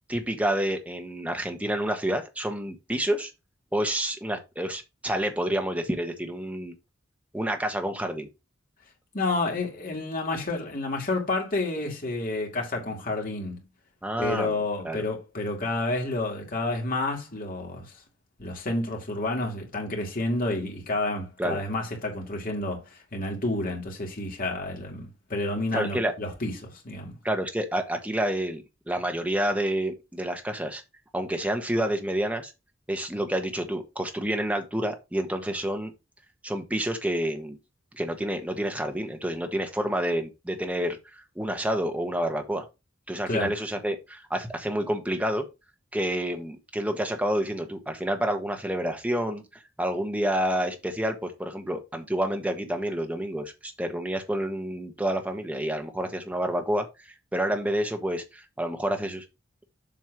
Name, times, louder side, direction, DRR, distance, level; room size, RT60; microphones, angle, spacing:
voice 1, 0.1-3.3 3.7-6.7 7.3-8.3 14.0-14.6 14.8-15.0 21.4-21.6 25.7-26.1 27.2-30.8 31.1-32.5 32.9-35.9 36.4-37.6 37.9-42.7 43.1-45.4 45.9-59.2, right 1 dB, 5° right, 1.2 m, -29 dB
voice 2, 9.1-13.6 14.2-17.9 18.4-27.2 43.3-43.5, left 2 dB, 45° left, 2.3 m, -30 dB
7.6 x 3.3 x 6.0 m
head